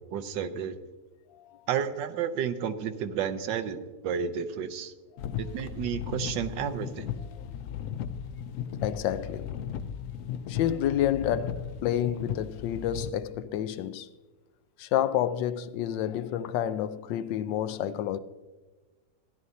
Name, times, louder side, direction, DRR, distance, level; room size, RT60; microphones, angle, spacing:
voice 1, 0.1-0.8 1.7-4.9 5.4-7.1, right 8 dB, 85° right, 1.5 m, -31 dB
sound 1, 5.2-13.1, left 9 dB, 75° left, 0.7 m, -36 dB
voice 2, 8.8-9.5 10.5-14.1 14.8-18.2, left 10 dB, 90° left, 1.3 m, -29 dB
15.5 x 11.0 x 2.7 m
omnidirectional pair, 1.9 m